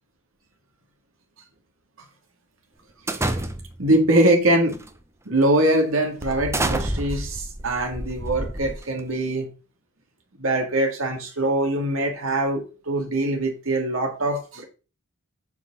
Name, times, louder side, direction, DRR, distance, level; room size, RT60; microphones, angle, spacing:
sound 1, 3.1-3.9 4.7-5.0 5.4-5.5 6.2-9.1, right 1 dB, 15° right, 0.8 m, -29 dB
voice 1, 3.8-4.7 5.3-9.5 10.4-14.6, right 1 dB, 70° right, 2.0 m, -22 dB
7.2 x 4.7 x 5.9 m
head